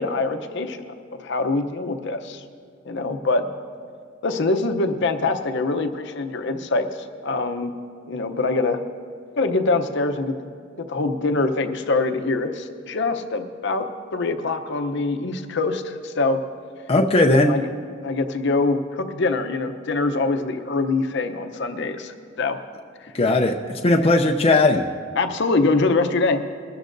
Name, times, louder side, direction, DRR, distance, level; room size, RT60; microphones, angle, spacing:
voice 1, 0.0-2.4 2.9-3.5 4.2-7.7 8.0-8.8 9.4-10.5 10.8-16.4 17.5-17.7 18.0-22.6 23.0-23.1 25.2-26.4, left 3 dB, 65° left, 7 dB, 0.8 m, -24 dB
voice 2, 16.9-17.5 23.1-24.8, left 2 dB, 30° left, 2 dB, 0.5 m, -18 dB
22.0 x 13.0 x 2.6 m, 2.1 s
head